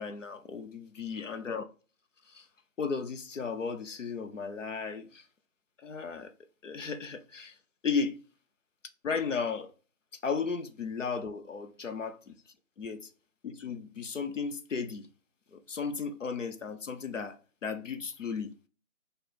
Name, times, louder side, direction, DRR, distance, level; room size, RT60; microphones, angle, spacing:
voice 1, 0.0-1.7 2.3-2.5 2.8-5.2 5.8-6.3 6.6-7.5 7.8-8.2 9.0-9.7 10.2-12.4 12.8-13.1 13.4-15.1 15.5-17.4 17.6-18.5, left 5 dB, 65° left, 0.8 m, -35 dB
4.6 x 2.6 x 4.2 m
figure-of-eight pair, 160°, 40 cm